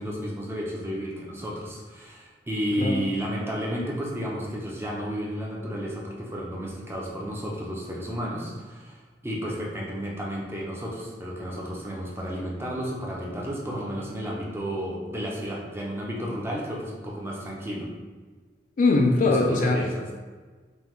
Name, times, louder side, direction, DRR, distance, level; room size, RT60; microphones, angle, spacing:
voice 1, 0.0-17.9 19.2-20.0, equal, 15° right, -3 dB, 0.7 m, -32 dB
voice 2, 18.8-19.8, left 3 dB, 45° left, 1 dB, 0.4 m, -21 dB
5.3 x 2.4 x 3.0 m, 1.4 s
head